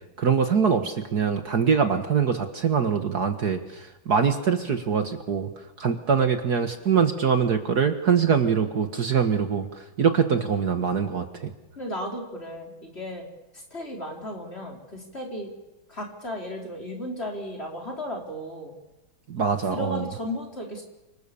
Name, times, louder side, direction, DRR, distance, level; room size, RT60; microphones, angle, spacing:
voice 1, 0.2-5.5 5.8-11.5 19.3-20.1, right 6 dB, 55° right, 7 dB, 1.9 m, -23 dB
voice 2, 11.8-13.2 13.5-15.5 15.9-18.7 19.7-20.8, left 1 dB, 30° left, 0 dB, 5.1 m, -35 dB
29.0 x 26.0 x 7.1 m, 1.0 s
omnidirectional pair, 2.2 m